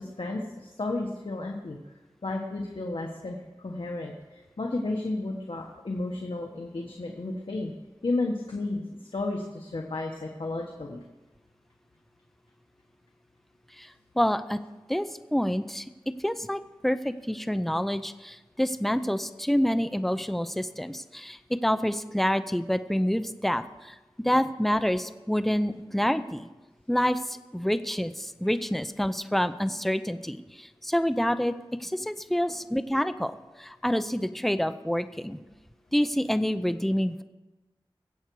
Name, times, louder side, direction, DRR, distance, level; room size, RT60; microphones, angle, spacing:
voice 1, 0.0-1.8 2.2-7.7 8.0-11.0, left 2 dB, 70° left, 1 dB, 1.4 m, -32 dB
voice 2, 14.2-14.6 14.9-15.8 16.2-23.9 24.2-26.5 26.9-31.5 31.8-33.3 33.6-35.4 35.9-37.2, equal, ahead, 11 dB, 0.6 m, -27 dB
21.0 x 8.2 x 4.7 m, 1.1 s
wide cardioid pair, 65°, 9 cm